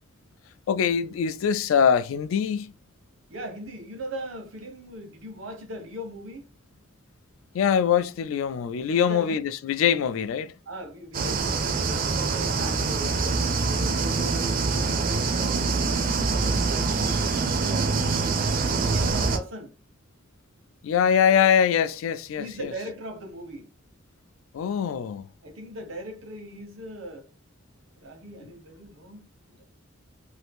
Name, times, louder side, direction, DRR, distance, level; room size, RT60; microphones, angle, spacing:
voice 1, 0.7-2.7 7.5-10.5 20.8-22.7 24.5-25.3 28.4-28.5, left 7 dB, 80° left, 0.3 m, -23 dB
voice 2, 3.3-6.5 9.0-9.4 10.7-17.9 18.5-19.7 22.4-23.7 25.4-27.2 28.0-29.6, right 1 dB, 80° right, 0.9 m, -39 dB
sound 1, 11.1-19.4, right 4 dB, 45° right, 0.4 m, -25 dB
2.7 x 2.6 x 3.5 m
head